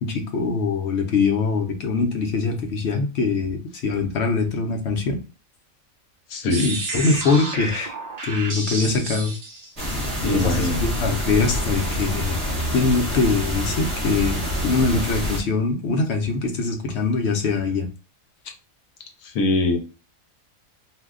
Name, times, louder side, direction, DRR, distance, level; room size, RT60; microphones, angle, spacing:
voice 1, 0.0-5.2 6.6-7.9 8.2-9.3 10.3-12.4 12.7-17.9, left 4 dB, 60° left, 4 dB, 0.9 m, -23 dB
voice 2, 6.3-6.7 10.2-10.8 19.2-19.8, left 2 dB, 80° left, 4 dB, 1.1 m, -22 dB
sound 1, 6.5-10.3, right 3 dB, 55° right, 0.4 m, -31 dB
sound 2, 9.8-15.4, equal, 25° right, 1.1 m, -26 dB
2.6 x 2.2 x 3.6 m, 0.33 s
omnidirectional pair, 1.4 m